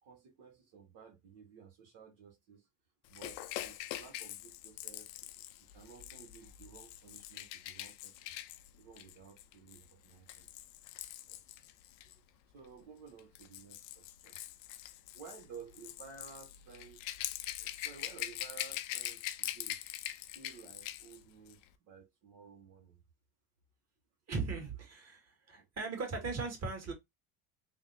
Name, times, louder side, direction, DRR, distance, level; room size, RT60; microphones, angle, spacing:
voice 1, 0.0-2.7 3.1-5.2 5.7-8.3 8.8-10.5 11.1-11.7 12.5-14.4 15.1-17.2 17.6-19.8 20.3-23.0 25.6-25.7, right 6 dB, 70° right, 1.0 m, -55 dB
Rattle / Rattle (instrument), 3.1-12.1 13.1-21.2 21.5-21.6, left 14 dB, 85° left, 0.6 m, -43 dB
voice 2, 24.3-26.9, right 4 dB, 40° right, 1.8 m, -38 dB
3.4 x 2.0 x 4.0 m
supercardioid pair, 95°, 41 cm